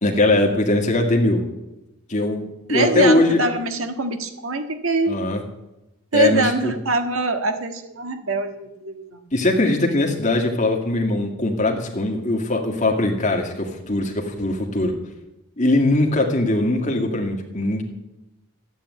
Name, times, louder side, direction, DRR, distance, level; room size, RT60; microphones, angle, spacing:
voice 1, 0.0-1.4 2.1-3.4 5.1-5.4 6.1-6.7 9.3-14.9 15.6-17.8, left 2 dB, 35° left, 2 dB, 2.1 m, -20 dB
voice 2, 2.7-5.2 6.1-9.2, right 3 dB, 75° right, 7 dB, 1.6 m, -24 dB
13.5 x 9.1 x 9.4 m, 0.96 s
head